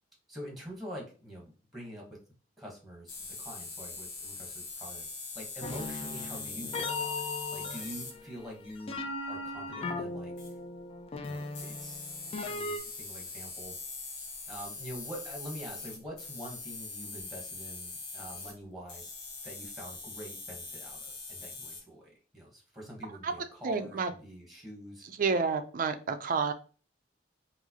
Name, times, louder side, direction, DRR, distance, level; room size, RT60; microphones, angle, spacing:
voice 1, 0.3-2.2 2.6-5.1 5.3-10.3 11.2-12.0 12.3-13.8 14.5-19.1 19.4-25.1, equal, ahead, -2 dB, 1.0 m, -45 dB
sound 1, 3.1-8.1 10.4-10.5 11.5-18.5 18.9-21.8, left 3 dB, 65° left, 1.0 m, -42 dB
sound 2, 5.6-12.8, left 3 dB, 30° left, 0.4 m, -38 dB
voice 2, 23.6-24.1 25.2-26.5, right 5 dB, 50° right, 9 dB, 0.4 m, -29 dB
4.7 x 2.0 x 2.8 m, 0.37 s
head